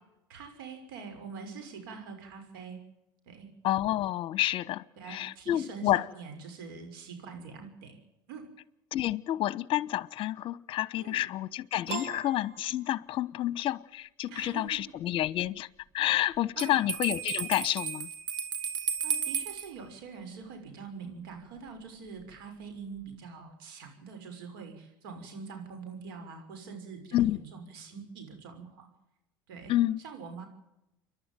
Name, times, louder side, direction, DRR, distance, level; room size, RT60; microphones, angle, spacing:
voice 1, 0.3-2.8 3.3-3.5 5.0-8.0 8.3-8.4 11.0-11.2 14.3-14.8 16.6-16.8 19.0-28.9 29.5-29.7 30.0-30.5, right 5 dB, 80° right, 6.1 m, -44 dB
voice 2, 3.6-6.0 8.9-15.7 15.9-18.1 27.1-27.4 29.7-30.0, left 14 dB, 50° left, 1.0 m, -29 dB
Piano, 11.9-13.4, right 5 dB, 60° right, 2.9 m, -40 dB
Bell, 16.6-19.7, right 7 dB, 40° right, 2.7 m, -33 dB
29.5 x 11.5 x 9.2 m
hypercardioid pair, 90°, 12 cm